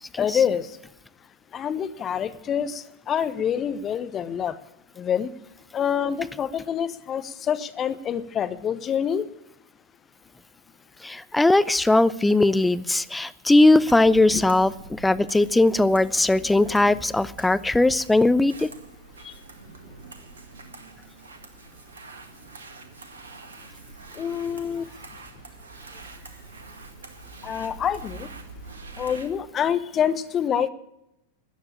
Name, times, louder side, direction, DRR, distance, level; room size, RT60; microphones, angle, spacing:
voice 1, 0.2-0.7 1.5-4.6 5.0-5.3 5.7-9.2 14.3-14.4 19.2-19.3 24.2-24.9 27.4-28.3 29.0-30.7, left 8 dB, 25° left, 13 dB, 0.9 m, -26 dB
voice 2, 11.0-18.7, left 2 dB, 5° left, 16 dB, 0.5 m, -19 dB
sound 1, 13.9-29.3, right 3 dB, 70° right, 1.9 m, -45 dB
13.5 x 9.5 x 8.7 m, 0.84 s
figure-of-eight pair, 90°, 0 cm